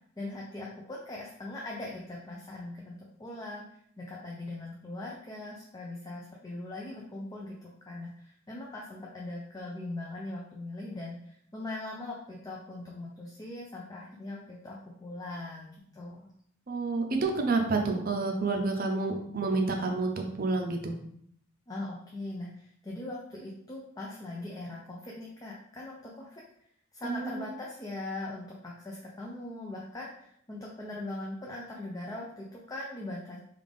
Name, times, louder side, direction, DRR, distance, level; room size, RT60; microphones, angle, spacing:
voice 1, 0.2-3.6 4.0-16.3 21.7-26.4 26.9-33.4, left 2 dB, 15° left, -3 dB, 0.4 m, -40 dB
voice 2, 16.7-20.9 27.0-27.5, right 3 dB, 45° right, 3 dB, 0.5 m, -29 dB
3.3 x 2.4 x 3.5 m, 0.67 s
head